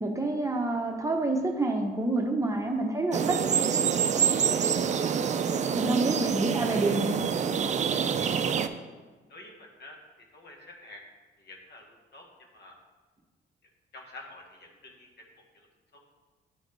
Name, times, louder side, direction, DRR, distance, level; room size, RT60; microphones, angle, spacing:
voice 1, 0.0-3.4 5.7-7.2, right 2 dB, 15° right, 2 dB, 0.9 m, -28 dB
sound 1, 3.1-8.7, right 7 dB, 35° right, 0.4 m, -26 dB
voice 2, 9.3-10.0 10.3-11.0 11.4-12.3 12.5-12.7 13.9-15.2 15.5-15.7 15.9-16.0, left 2 dB, 60° left, 1 dB, 1.4 m, -48 dB
10.0 x 4.0 x 3.3 m, 1.3 s
cardioid pair, 90°, 20 cm